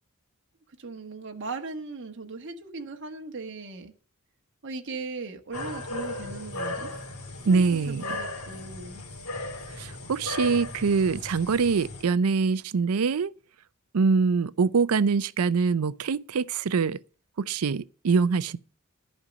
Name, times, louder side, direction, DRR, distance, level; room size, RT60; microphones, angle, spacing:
voice 1, 0.8-3.9 4.6-6.9 7.5-9.0, right 3 dB, 55° right, 1.3 m, -38 dB
sound 1, 5.5-12.0, left 2 dB, 85° left, 2.8 m, -36 dB
voice 2, 7.5-8.0 9.8-13.3 13.9-17.0 17.4-18.6, right 5 dB, 80° right, 0.5 m, -24 dB
11.0 x 5.3 x 8.4 m
head